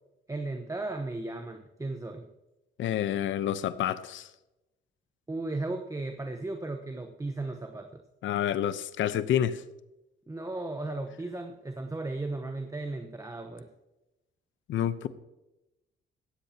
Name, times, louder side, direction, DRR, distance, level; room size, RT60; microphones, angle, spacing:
voice 1, 0.3-2.3 5.3-8.0 10.3-13.7, right 2 dB, 15° right, 5 dB, 1.0 m, -35 dB
voice 2, 2.8-4.3 8.2-9.6 14.7-15.1, left 10 dB, 75° left, 13 dB, 0.8 m, -28 dB
16.0 x 13.5 x 2.9 m, 0.95 s
cardioid pair, 90°, 20 cm